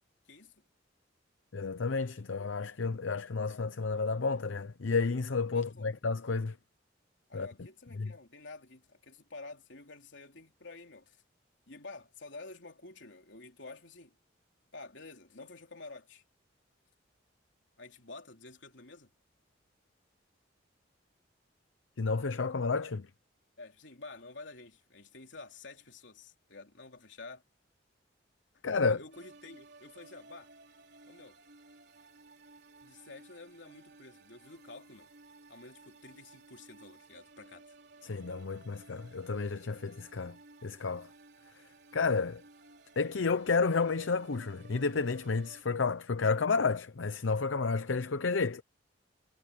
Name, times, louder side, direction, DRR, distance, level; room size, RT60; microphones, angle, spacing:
voice 1, 0.3-0.6 5.5-5.9 7.3-11.2 11.7-14.2 14.7-16.2 17.8-19.1 23.6-27.4 28.9-30.5 31.1-31.4 32.8-35.1 35.5-37.7, left 3 dB, 70° left, 3.5 m, -50 dB
voice 2, 1.5-6.6 7.3-7.5 8.0-8.1 22.0-23.1 28.6-29.0 38.0-40.4 40.6-41.1 41.9-42.4 43.0-48.6, left 4 dB, 85° left, 0.7 m, -31 dB
sound 1, 29.1-45.6, right 3 dB, 60° right, 4.6 m, -57 dB
head